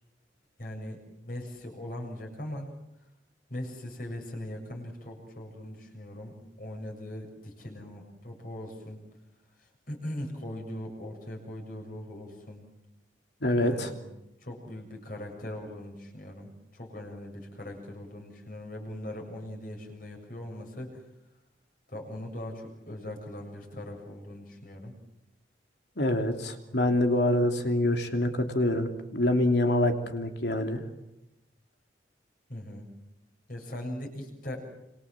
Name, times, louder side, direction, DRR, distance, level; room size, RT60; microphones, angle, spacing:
voice 1, 0.6-1.0 1.2-2.7 3.5-9.0 9.6-12.6 13.6-14.0 14.4-21.0 21.9-24.9 32.5-32.9 33.5-34.6, left 1 dB, 50° left, 1 dB, 7.4 m, -40 dB
voice 2, 13.4-13.9 26.0-30.8, left 1 dB, 65° left, 5 dB, 3.1 m, -26 dB
27.0 x 26.5 x 7.6 m, 0.89 s
head